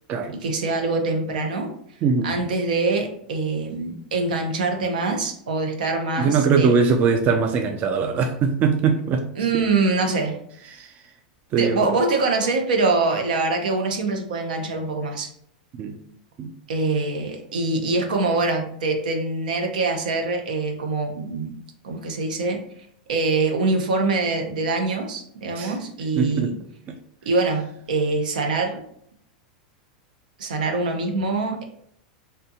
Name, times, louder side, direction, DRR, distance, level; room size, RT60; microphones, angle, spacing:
voice 1, 0.4-1.7 2.2-6.3 6.6-6.7 9.4-10.4 11.6-15.3 16.7-21.5 21.8-22.6 23.1-26.5 27.3-28.8 30.4-31.6, right 3 dB, 80° right, 4 dB, 0.6 m, -24 dB
voice 2, 2.0-2.4 6.2-9.3 9.5-9.6 10.7-11.1 11.5-11.9 15.8-16.0 16.4-16.5 25.5-25.8 26.2-26.5 26.9-27.0, right 5 dB, 35° right, 4 dB, 0.3 m, -21 dB
2.7 x 2.2 x 2.7 m, 0.67 s
hypercardioid pair, 105°, 4 cm